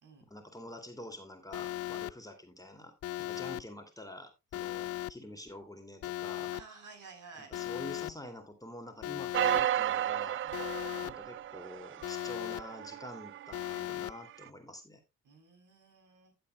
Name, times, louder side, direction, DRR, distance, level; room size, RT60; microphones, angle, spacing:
voice 1, 0.3-2.9 3.2-6.5 7.4-10.4 11.0-15.0, left 1 dB, 10° left, 4 dB, 2.6 m, -47 dB
Alarm, 1.5-2.1 3.0-3.6 4.5-5.1 6.0-6.6 7.5-8.1 9.0-9.6 10.5-11.1 12.0-12.6 13.5-14.1, left 15 dB, 40° left, 0.4 m, -37 dB
voice 2, 6.5-7.5 10.4-10.6 15.2-16.3, right 4 dB, 50° right, 4 dB, 3.7 m, -52 dB
sound 1, 9.3-13.8 14.4-14.5, right 11 dB, 35° right, 0.4 m, -33 dB
16.5 x 7.9 x 2.3 m, 0.22 s
figure-of-eight pair, 45°, 39 cm